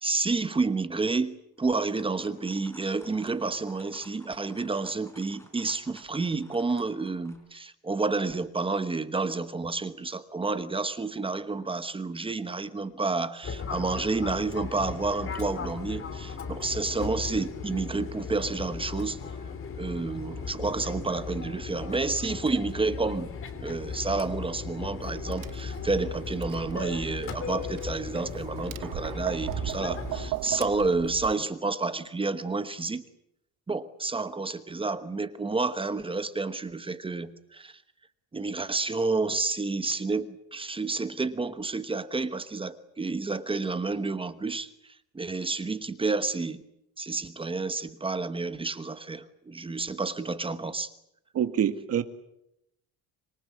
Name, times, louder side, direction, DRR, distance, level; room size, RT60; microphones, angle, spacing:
voice 1, 0.0-19.2 19.7-33.0 33.7-37.8 38.3-44.7 45.1-46.6 47.0-50.9, right 3 dB, 15° right, 1.1 m, -30 dB
sound 1, 1.6-7.4, left 1 dB, 5° left, 4.2 m, -55 dB
Fixed-wing aircraft airplane, 13.4-30.3, left 5 dB, 35° left, 3.0 m, -37 dB
Tap, 25.1-31.3, right 15 dB, 60° right, 1.0 m, -38 dB
voice 2, 51.3-52.0, right 9 dB, 40° right, 1.9 m, -26 dB
26.0 x 22.5 x 8.4 m
cardioid pair, 160°, 37 cm